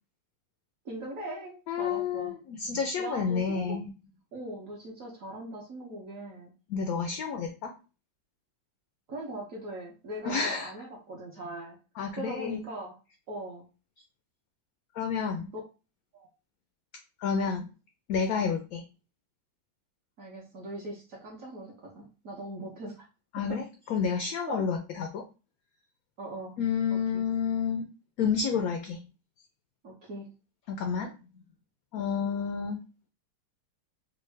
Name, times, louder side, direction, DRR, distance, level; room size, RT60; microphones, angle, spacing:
voice 1, 0.8-2.3 3.0-3.8 4.3-6.5 9.1-11.8 12.2-12.9 13.3-13.6 15.5-15.6 16.1-16.3 18.4-18.6 20.2-23.1 23.5-23.6 24.5-24.7 26.2-26.6 26.9-27.2 29.8-30.3 32.0-32.3, right 1 dB, 55° right, -2 dB, 1.0 m, -40 dB
voice 2, 1.7-3.9 6.7-7.7 10.2-10.7 12.0-12.7 14.9-15.5 17.2-17.7 18.1-18.8 23.3-25.2 26.6-27.8 28.2-29.0 30.7-31.1 31.9-32.8, left 6 dB, 80° left, 4 dB, 0.8 m, -30 dB
3.6 x 2.2 x 3.2 m, 0.32 s
omnidirectional pair, 2.0 m